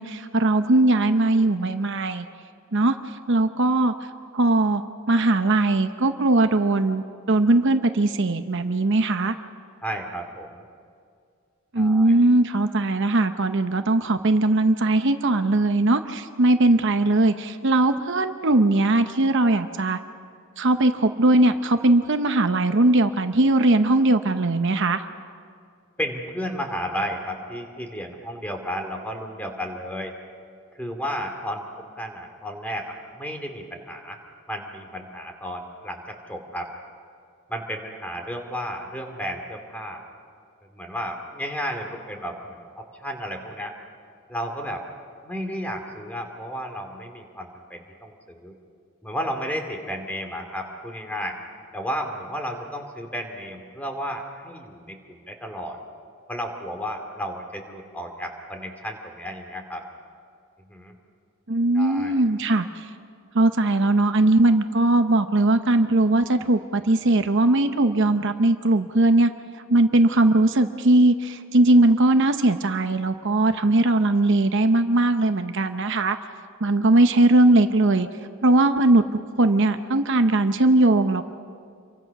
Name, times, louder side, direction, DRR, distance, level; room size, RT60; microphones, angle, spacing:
voice 1, 0.0-2.2 2.7-3.9 4.3-4.8 5.1-9.3 11.7-20.0 20.6-25.0 61.5-62.9 63.3-69.3 69.7-76.2 76.6-78.1 78.4-79.0 79.4-81.2, right 2 dB, 55° right, 8 dB, 0.8 m, -20 dB
voice 2, 9.8-10.6 11.8-12.1 26.0-30.2 30.8-31.6 32.0-34.2 34.5-36.7 37.5-40.1 40.7-43.7 44.3-44.8 45.2-48.5 49.0-51.4 51.7-55.8 56.3-59.8 60.6-60.9 61.7-62.2, equal, 5° left, 4 dB, 2.6 m, -33 dB
28.5 x 24.0 x 6.0 m, 2.3 s
head